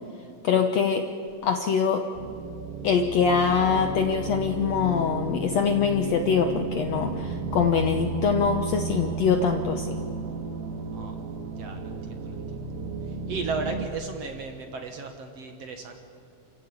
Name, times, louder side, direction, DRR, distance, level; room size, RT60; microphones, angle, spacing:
voice 1, 0.4-1.0 1.4-2.0 2.8-9.9, left 6 dB, 70° left, 6 dB, 1.6 m, -23 dB
sound 1, 2.1-13.9, right 4 dB, 85° right, 3.1 m, -33 dB
voice 2, 11.6-12.4 13.1-15.9, right 4 dB, 55° right, 5 dB, 2.0 m, -35 dB
28.5 x 15.5 x 8.5 m, 2.5 s
omnidirectional pair, 4.2 m